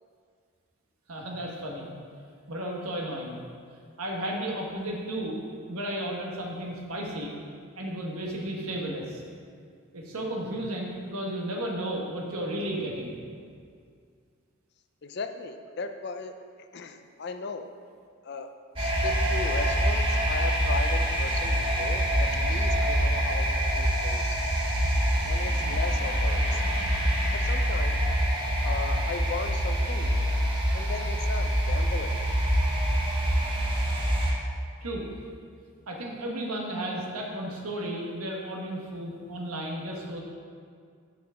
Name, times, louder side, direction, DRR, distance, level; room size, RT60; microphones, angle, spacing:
voice 1, 1.1-1.9 2.5-3.4 4.0-5.4 5.7-7.3 7.8-9.2 9.9-13.1 34.8-35.1 35.9-40.2, right 1 dB, 85° right, -1 dB, 1.3 m, -33 dB
voice 2, 15.0-16.3 16.7-17.7 18.2-18.5 18.8-24.4 25.3-26.6 27.3-28.0 28.6-30.3 30.7-32.4, left 4 dB, 50° left, 7 dB, 0.5 m, -37 dB
sound 1, 18.7-34.3, equal, 25° right, 1.0 m, -25 dB
6.6 x 4.9 x 6.3 m, 2.2 s
head